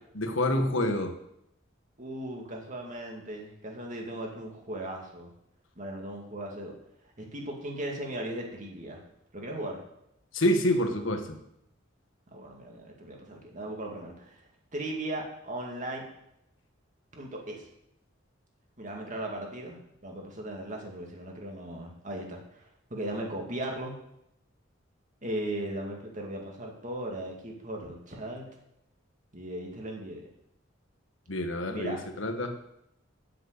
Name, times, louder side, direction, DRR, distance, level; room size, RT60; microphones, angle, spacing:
voice 1, 0.1-1.1 10.3-11.4 31.3-32.5, left 1 dB, 75° left, 7 dB, 1.3 m, -27 dB
voice 2, 2.0-5.3 5.8-6.7 7.2-9.0 9.3-9.8 12.3-14.4 14.7-16.0 17.1-17.7 18.8-24.0 25.2-28.4 29.3-30.3 31.7-32.0, right 1 dB, 40° right, 0 dB, 2.2 m, -37 dB
7.6 x 7.5 x 8.1 m, 0.79 s
head